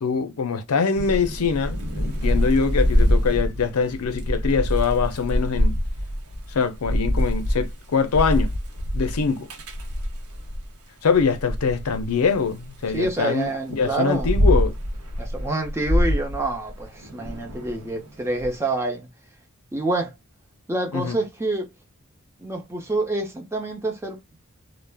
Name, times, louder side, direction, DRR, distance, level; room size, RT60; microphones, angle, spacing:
voice 1, 0.0-5.8 6.5-8.5 8.9-9.5 11.0-14.7 20.9-21.2, left 5 dB, 80° left, 0.5 m, -23 dB
Thunder / Rain, 0.9-10.7 11.1-13.1 13.7-18.5, equal, 80° right, 0.8 m, -25 dB
voice 2, 2.2-2.6 12.9-14.3 15.2-19.1 19.7-20.1 20.7-21.7 22.4-24.2, right 2 dB, 10° right, 0.6 m, -27 dB
2.3 x 2.0 x 3.3 m
head